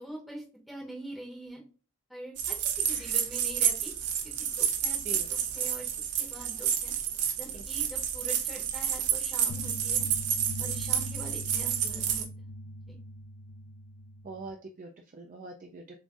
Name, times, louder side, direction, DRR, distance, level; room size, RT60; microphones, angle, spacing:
voice 1, 0.0-1.6 2.1-3.9 4.4-5.9 6.2-6.9 7.4-10.1 10.6-12.3 12.9-13.0, right 1 dB, ahead, -3 dB, 0.7 m, -44 dB
sound 1, 2.4-12.2, right 8 dB, 90° right, 0.7 m, -30 dB
sound 2, 9.5-14.5, left 1 dB, 80° left, 0.5 m, -41 dB
voice 2, 14.2-16.0, right 2 dB, 35° right, 2 dB, 0.3 m, -43 dB
7.0 x 2.5 x 2.4 m, 0.37 s
head